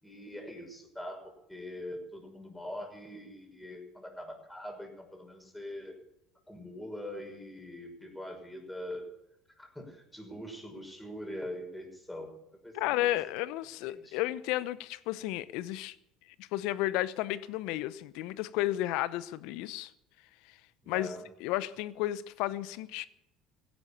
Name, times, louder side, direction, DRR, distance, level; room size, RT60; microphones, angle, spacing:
voice 1, 0.0-5.9 6.5-9.0 9.6-12.3 12.6-12.9 13.8-14.2 20.8-21.3, left 1 dB, 5° left, 6.1 m, -43 dB
voice 2, 12.7-15.9 16.4-19.9 20.9-21.1 21.4-23.1, left 15 dB, 70° left, 0.8 m, -32 dB
16.5 x 11.5 x 7.3 m
hypercardioid pair, 70°, 0 cm